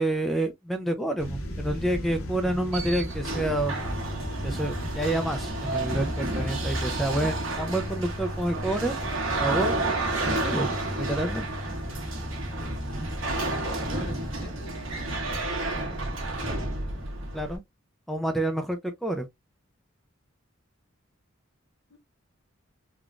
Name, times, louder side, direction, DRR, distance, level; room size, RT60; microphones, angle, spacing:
voice 1, 0.0-3.7 4.1-8.9 9.4-9.7 10.4-10.7 11.0-11.5 16.9-17.0 17.3-17.6 18.1-19.3, right 1 dB, ahead, 0.3 m, -28 dB
sound 1, 1.2-12.0, equal, 80° left, 1.1 m, -38 dB
sound 2, 2.4-17.6, right 2 dB, 70° right, 1.2 m, -30 dB
voice 2, 13.8-14.9 21.9-22.0, left 1 dB, 55° left, 0.9 m, -44 dB
3.6 x 2.3 x 2.3 m
head